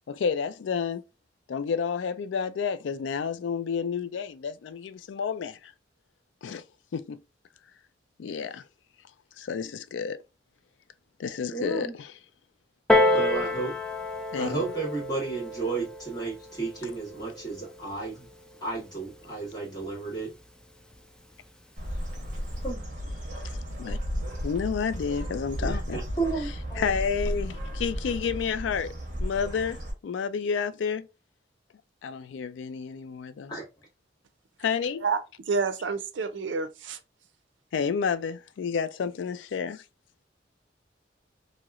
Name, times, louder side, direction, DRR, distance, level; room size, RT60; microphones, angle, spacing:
voice 1, 0.1-1.0 1.5-5.7 6.4-6.6 6.9-7.2 8.2-8.6 9.4-10.2 11.2-12.1 14.3-14.6 23.4-24.0 24.4-26.0 26.8-31.1 32.0-33.6 34.6-35.0 37.7-39.8, left 6 dB, 85° left, 0.3 m, -30 dB
voice 2, 11.5-11.9 13.1-13.7 14.3-18.3 18.6-20.3 22.6-22.8 25.6-27.0 33.5-33.6, right 3 dB, 20° left, 1.8 m, -33 dB
Piano, 12.9-18.1 18.9-19.0, left 1 dB, 5° left, 0.4 m, -28 dB
Bird, 21.8-29.9, equal, 45° right, 1.1 m, -34 dB
voice 3, 35.5-37.0, right 4 dB, 85° right, 0.5 m, -28 dB
3.0 x 2.8 x 2.4 m
head